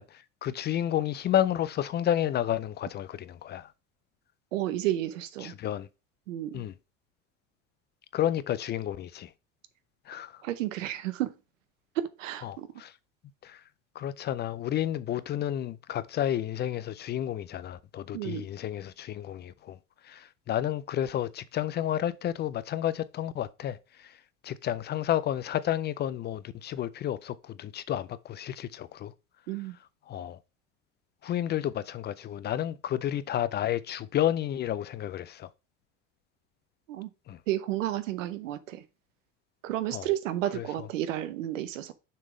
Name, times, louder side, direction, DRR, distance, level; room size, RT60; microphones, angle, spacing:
voice 1, 0.0-3.7 5.4-5.9 6.5-6.7 8.1-9.3 10.1-10.4 12.4-12.9 13.4-13.6 14.0-19.8 20.0-24.1 24.4-29.1 30.1-30.4 31.2-35.5 37.3-37.4 39.9-40.1 40.6-40.7, left 11 dB, 30° left, 0.3 m, -31 dB
voice 2, 4.5-5.5 6.3-6.6 10.4-11.3 11.9-12.7 18.1-18.5 29.5-29.8 36.9-37.1 37.5-38.8 39.6-41.9, right 13 dB, 85° right, 0.8 m, -32 dB
6.6 x 3.7 x 5.0 m
hypercardioid pair, 90°, 37 cm